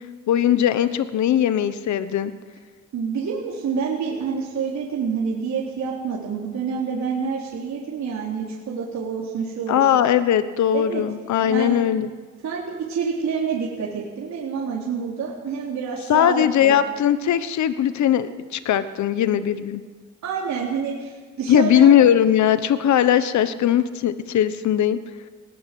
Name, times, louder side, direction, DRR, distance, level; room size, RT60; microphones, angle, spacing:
voice 1, 0.3-2.3 9.7-12.1 16.1-19.8 21.5-25.0, left 10 dB, 70° left, 12 dB, 1.1 m, -19 dB
voice 2, 2.9-10.0 10.7-11.0 11.5-11.8 12.4-16.8 20.2-22.0, right 6 dB, 70° right, -4 dB, 3.8 m, -28 dB
19.5 x 18.0 x 7.7 m, 1.5 s
cardioid pair, 90°, 30 cm